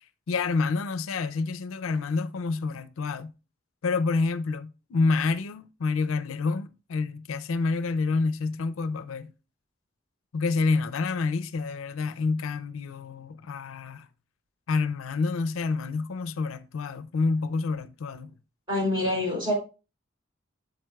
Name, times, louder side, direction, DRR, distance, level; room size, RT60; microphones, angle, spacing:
voice 1, 0.3-3.3 3.8-9.3 10.3-14.1 14.7-18.4, left 4 dB, 80° left, 0.5 m, -28 dB
voice 2, 18.7-19.5, left 1 dB, 25° right, 3.7 m, -26 dB
7.6 x 6.9 x 2.3 m
head